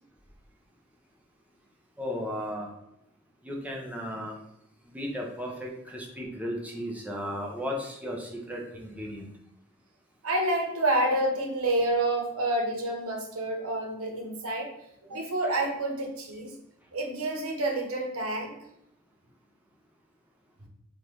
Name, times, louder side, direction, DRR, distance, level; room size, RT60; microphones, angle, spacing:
voice 1, 2.0-2.7 3.4-4.3 4.9-9.3, equal, 5° right, -1 dB, 0.7 m, -35 dB
voice 2, 10.2-14.7 15.1-16.5 16.9-18.5, right 1 dB, 80° right, 2 dB, 1.0 m, -28 dB
3.7 x 2.5 x 4.6 m, 0.81 s
head